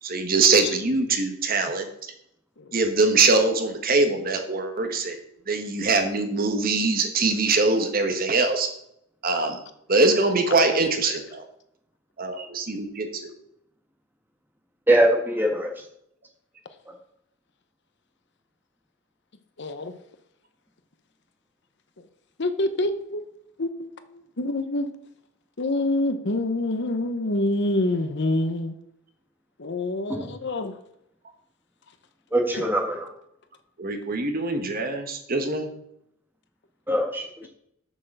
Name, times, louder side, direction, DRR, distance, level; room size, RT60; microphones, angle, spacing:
voice 1, 0.0-2.1 2.7-5.2 5.5-8.7 9.2-9.6 9.9-11.4 12.2-13.3 33.8-35.7, right 3 dB, 40° right, 6 dB, 1.3 m, -23 dB
voice 2, 14.9-15.7 16.9-17.0 30.1-30.3 32.3-33.1 36.9-37.2, right 1 dB, 10° right, 2 dB, 1.6 m, -22 dB
voice 3, 19.6-20.0 22.4-23.2 23.6-24.9 25.6-28.7 29.6-30.7 32.6-32.7, left 2 dB, 55° left, 9 dB, 0.8 m, -26 dB
7.5 x 6.8 x 6.5 m, 0.74 s
head